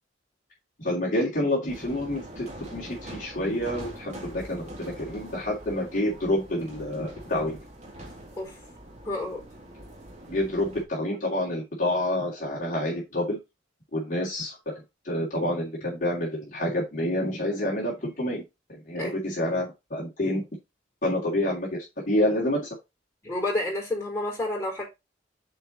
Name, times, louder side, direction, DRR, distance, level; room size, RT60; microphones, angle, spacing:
voice 1, 0.8-7.6 10.3-13.4 13.9-18.4 18.7-20.4 21.0-22.7, left 1 dB, 40° left, 3.1 m, -28 dB
sound 1, 1.7-10.8, right 1 dB, 35° right, 2.0 m, -43 dB
voice 2, 9.0-9.5 19.0-19.1 19.5-19.6 23.2-24.9, left 1 dB, 15° left, 4.3 m, -30 dB
6.9 x 4.7 x 4.2 m
head